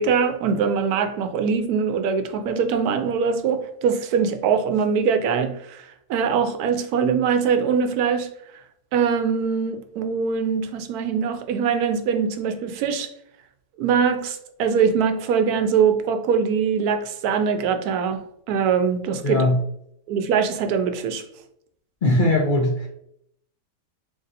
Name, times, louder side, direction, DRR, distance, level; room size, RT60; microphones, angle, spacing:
voice 1, 0.0-8.3 8.9-13.1 13.8-19.4 20.1-21.2, right 6 dB, 90° right, 1.1 m, -22 dB
voice 2, 19.2-19.6 22.0-22.9, left 1 dB, 50° left, 0.6 m, -19 dB
4.0 x 3.2 x 2.5 m
omnidirectional pair, 1.6 m